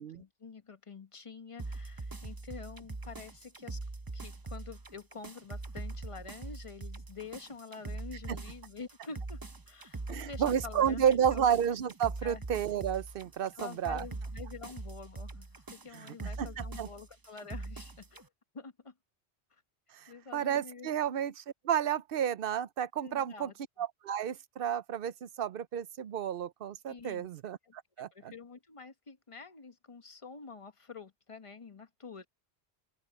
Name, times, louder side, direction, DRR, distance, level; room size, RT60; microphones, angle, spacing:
voice 1, 0.0-3.8 4.1-9.4 9.7-11.5 12.2-12.4 13.5-18.3 18.5-18.9 19.5-19.6 20.1-20.9 23.0-23.5 26.9-27.4 27.6-32.3, left 5 dB, 30° left, 1.0 m, -47 dB
sound 1, 1.6-18.2, right 3 dB, 20° right, 0.7 m, -42 dB
voice 2, 10.1-14.1 15.9-16.9 19.9-23.5 23.8-28.3, right 9 dB, 60° right, 0.8 m, -31 dB
open air
omnidirectional pair, 1.1 m